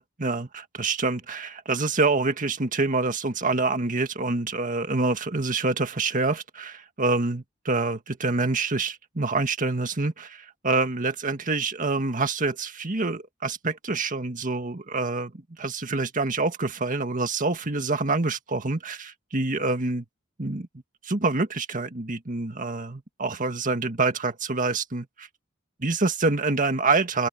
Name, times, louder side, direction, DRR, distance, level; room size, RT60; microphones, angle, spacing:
voice 1, 0.0-15.3 15.6-20.1 20.4-20.7 21.0-25.3 25.8-27.3, right 3 dB, 40° right, 1.8 m, -26 dB
open air
head